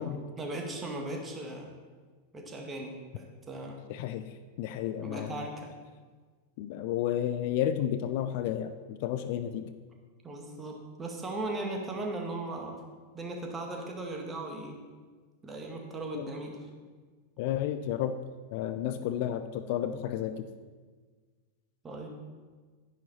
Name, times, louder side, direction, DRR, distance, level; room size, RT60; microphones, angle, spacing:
voice 1, 0.0-1.7 2.3-3.8 5.0-5.7 10.2-12.8 13.1-14.8 15.4-16.7 21.8-22.1, right 2 dB, 20° right, 1 dB, 2.0 m, -38 dB
voice 2, 3.9-4.2 4.6-5.5 6.6-9.7 16.1-16.2 17.4-18.2 18.5-20.5, left 10 dB, 50° left, 11 dB, 0.5 m, -32 dB
11.0 x 10.5 x 4.3 m, 1.5 s
figure-of-eight pair, 90°, 0 cm